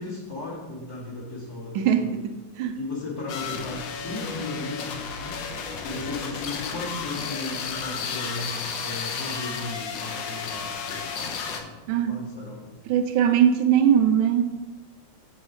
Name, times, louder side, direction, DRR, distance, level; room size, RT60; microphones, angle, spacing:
voice 1, 0.0-2.1 2.7-5.5 5.8-11.7 12.1-12.6, left 2 dB, 45° left, -7 dB, 3.1 m, -36 dB
voice 2, 1.7-2.8 11.9-12.2 12.9-14.6, right 9 dB, 80° right, 7 dB, 1.3 m, -21 dB
sound 1, 3.3-11.6, left 6 dB, 70° left, 1.3 m, -33 dB
6.2 x 4.7 x 6.3 m, 1.1 s
omnidirectional pair, 2.2 m